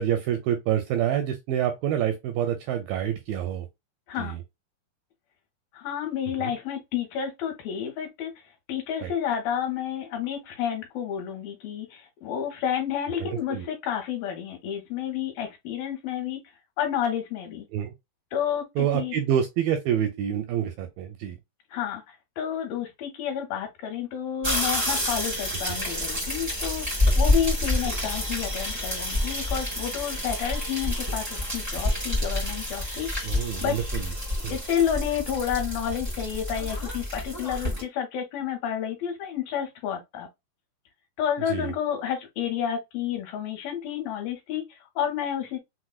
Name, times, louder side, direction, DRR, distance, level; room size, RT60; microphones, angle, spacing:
voice 1, 0.0-3.7 4.2-4.4 6.4-6.5 9.0-9.1 13.2-13.7 17.7-17.9 18.8-21.4 25.7-25.8 33.2-34.1 34.4-34.6 41.5-41.7, right 10 dB, 85° right, 2.1 m, -27 dB
voice 2, 5.7-16.4 16.8-17.7 18.3-19.1 21.7-33.7 34.5-40.3 41.2-45.6, left 9 dB, 75° left, 2.4 m, -30 dB
sound 1, 24.4-37.8, left 1 dB, 45° right, 0.5 m, -28 dB
5.9 x 2.1 x 2.3 m
omnidirectional pair, 4.5 m